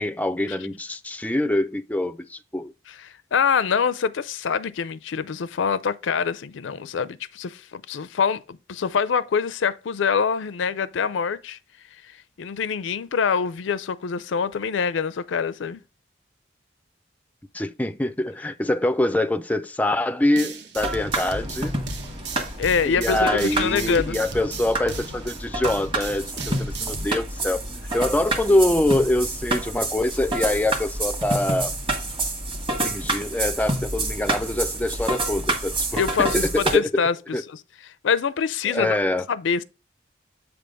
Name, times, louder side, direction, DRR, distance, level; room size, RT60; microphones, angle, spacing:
voice 1, 0.0-2.7 17.5-21.8 22.9-27.6 27.9-31.7 32.8-35.7 36.2-37.0 37.3-37.4 38.7-39.2, left 1 dB, 10° left, 0.3 m, -24 dB
voice 2, 2.9-11.6 12.4-15.8 22.6-24.2 35.9-37.2 37.5-37.6 38.0-39.0 39.3-39.6, left 6 dB, 80° left, 0.4 m, -25 dB
sound 1, 20.4-27.0, right 3 dB, 60° right, 1.0 m, -36 dB
sound 2, 20.8-36.8, right 2 dB, 25° right, 1.5 m, -28 dB
8.1 x 3.5 x 5.1 m
head